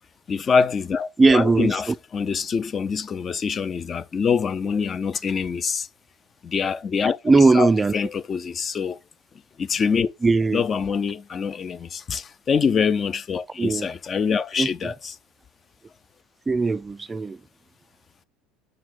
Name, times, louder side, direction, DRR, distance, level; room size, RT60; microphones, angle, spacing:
voice 1, 0.3-5.9 6.4-7.2 7.5-9.0 9.6-10.1 10.5-15.1, left 6 dB, 35° left, 0.6 m, -25 dB
voice 2, 1.2-2.0 7.2-8.0 10.2-10.7 13.6-13.9 14.6-14.7 16.5-17.4, right 3 dB, 20° right, 0.4 m, -19 dB
6.4 x 4.7 x 3.8 m
supercardioid pair, 100°, 0 cm